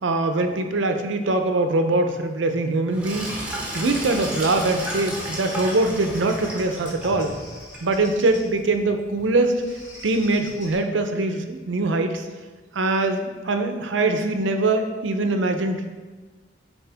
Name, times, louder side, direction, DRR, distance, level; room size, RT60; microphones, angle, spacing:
voice 1, 0.0-7.3 7.8-9.6 10.0-12.3 12.7-16.0, right 2 dB, 90° right, 6 dB, 0.6 m, -23 dB
Sink (filling or washing), 2.9-10.7, right 1 dB, 5° right, 1.1 m, -35 dB
Bird vocalization bird call bird song, 4.2-8.5 9.5-10.7, left 1 dB, 85° left, 2.1 m, -45 dB
7.9 x 4.3 x 3.4 m, 1.3 s
head